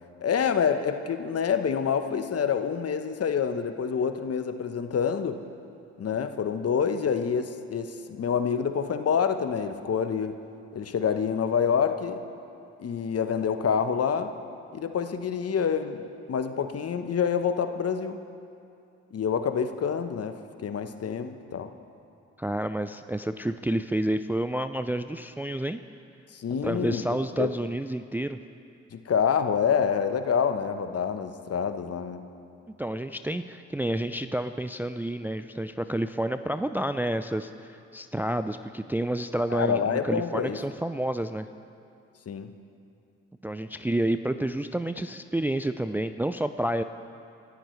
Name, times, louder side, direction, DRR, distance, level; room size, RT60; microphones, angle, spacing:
voice 1, 0.2-5.4 6.0-10.4 10.7-12.2 12.8-14.3 14.7-16.0 16.3-18.2 19.1-21.7 26.3-27.5 28.9-32.3 39.5-40.6 42.3-42.5, left 7 dB, 45° left, 8 dB, 1.1 m, -27 dB
voice 2, 22.4-25.8 26.6-28.4 32.8-37.5 37.9-41.5 43.4-46.8, right 1 dB, 5° right, 10 dB, 0.5 m, -29 dB
24.5 x 13.0 x 3.3 m, 2.6 s
hypercardioid pair, 45°, 34 cm